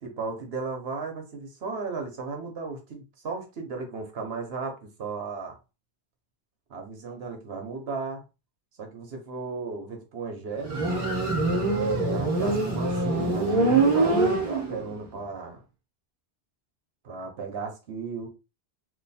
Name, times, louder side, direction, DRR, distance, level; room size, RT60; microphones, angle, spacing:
voice 1, 0.0-5.6 6.7-8.2 8.8-10.9 12.0-15.6 17.0-18.3, right 4 dB, 75° right, 3 dB, 1.1 m, -35 dB
Motorcycle, 10.6-15.0, right 3 dB, 35° right, 1.1 m, -24 dB
3.0 x 2.3 x 4.1 m, 0.29 s
omnidirectional pair, 1.1 m